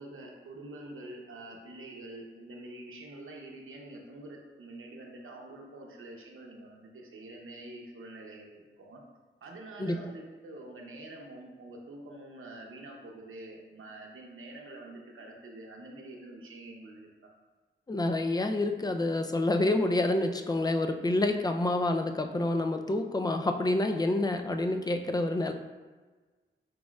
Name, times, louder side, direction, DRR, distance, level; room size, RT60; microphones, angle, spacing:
voice 1, 0.0-9.0 9.4-17.1, right 2 dB, 80° right, 0 dB, 0.7 m, -46 dB
voice 2, 17.9-25.5, left 2 dB, 20° left, 6 dB, 0.4 m, -28 dB
4.8 x 4.1 x 2.3 m, 1.3 s
cardioid pair, 55°, 21 cm